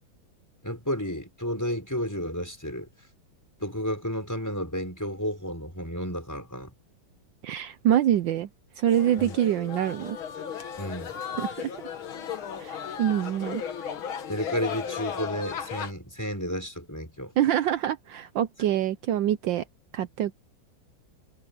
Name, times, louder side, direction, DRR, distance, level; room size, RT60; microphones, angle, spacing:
voice 1, 0.6-2.9 3.6-6.7 9.2-9.4 10.8-11.2 14.3-17.3, equal, 10° left, 5.9 m, -32 dB
voice 2, 7.4-8.5 8.8-10.2 11.4-11.5 12.6-13.6 17.4-19.6 19.9-20.3, right 11 dB, 70° right, 1.4 m, -25 dB
sound 1, 8.9-15.9, left 8 dB, 85° left, 2.4 m, -35 dB
omnidirectional pair, 2.2 m